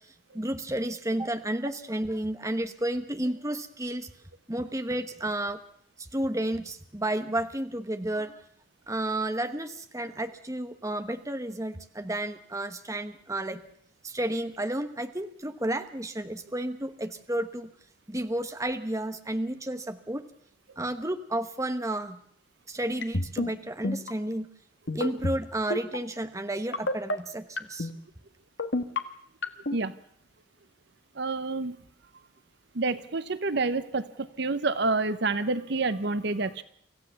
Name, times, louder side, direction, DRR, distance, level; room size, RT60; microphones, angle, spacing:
voice 1, 0.3-4.1 4.5-5.6 6.0-8.4 8.9-13.6 14.0-17.7 18.1-20.2 20.8-22.2 22.7-24.5 24.9-27.9, right 1 dB, 15° right, 8 dB, 1.1 m, -32 dB
sound 1, 23.0-23.5 23.8-24.1 24.9-25.4 25.7-26.0 26.7-27.1 27.6-27.9 28.6-29.0 29.4-29.8, left 2 dB, 60° left, 1.5 m, -28 dB
voice 2, 31.2-31.8 32.8-36.6, right 3 dB, 55° right, 14 dB, 0.8 m, -28 dB
25.0 x 15.5 x 7.0 m, 0.65 s
head